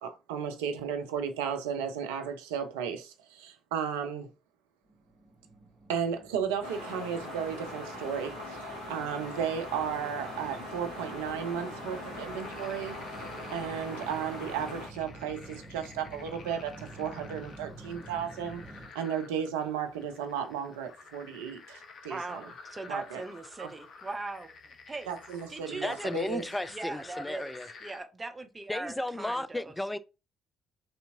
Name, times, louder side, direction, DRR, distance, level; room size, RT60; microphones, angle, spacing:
voice 1, 0.0-4.3 5.9-13.0 13.5-18.6 18.9-22.4 22.9-23.2 23.6-23.7 25.1-26.4, right 8 dB, 75° right, 0.4 m, -34 dB
sound 1, 4.9-18.9, right 2 dB, 5° right, 1.0 m, -49 dB
sound 2, 6.6-14.9, left 1 dB, 85° left, 1.1 m, -41 dB
sound 3, 11.9-28.0, left 4 dB, 50° left, 0.6 m, -51 dB
voice 2, 22.1-24.5 24.9-25.1 25.5-26.1 26.7-27.5 27.8-29.7, right 3 dB, 25° right, 0.7 m, -40 dB
voice 3, 25.8-27.7 28.7-30.0, left 1 dB, 10° left, 0.3 m, -34 dB
3.4 x 2.7 x 2.6 m
figure-of-eight pair, 45°, 0 cm